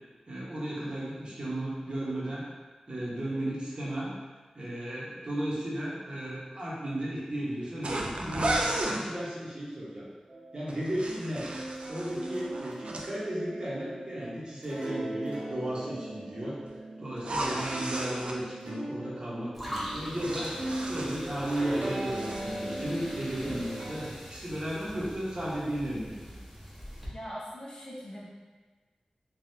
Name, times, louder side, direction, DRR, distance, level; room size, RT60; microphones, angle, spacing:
voice 1, 0.3-2.4 2.9-4.1 4.5-10.1 10.5-11.5 11.9-16.6 17.0-20.5 20.8-26.4, right 1 dB, 45° right, -7 dB, 0.9 m, -34 dB
sound 1, 7.8-9.0 10.7-13.1 17.2-18.4 19.8-21.7 22.0-22.5, right 1 dB, 60° right, 0.3 m, -34 dB
sound 2, 10.3-24.1, right 1 dB, 85° right, 0.7 m, -39 dB
sound 3, 19.5-27.1, equal, 5° right, 0.8 m, -42 dB
voice 2, 27.1-28.2, equal, 40° left, -6 dB, 0.7 m, -41 dB
3.4 x 2.3 x 2.7 m, 1.3 s
wide cardioid pair, 75°, 2 cm